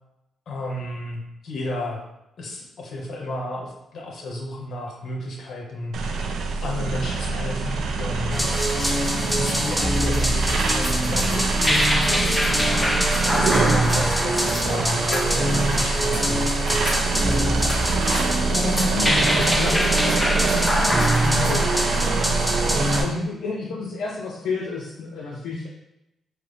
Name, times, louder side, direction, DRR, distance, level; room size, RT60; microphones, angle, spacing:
voice 1, 0.5-2.0 2.4-5.9 6.6-8.5 9.3-16.8, left 1 dB, 65° left, -1 dB, 1.0 m, -32 dB
sound 1, 5.9-23.0, right 4 dB, 75° right, 0.4 m, -25 dB
sound 2, 8.3-23.1, equal, 5° left, 0.5 m, -23 dB
sound 3, 8.4-14.8 15.0-18.3 18.6-21.6, left 1 dB, 30° left, 1.2 m, -35 dB
voice 2, 18.5-21.8 23.0-25.7, left 3 dB, 85° left, -3 dB, 0.5 m, -30 dB
4.7 x 2.1 x 3.3 m, 0.88 s
cardioid pair, 80°, 0 cm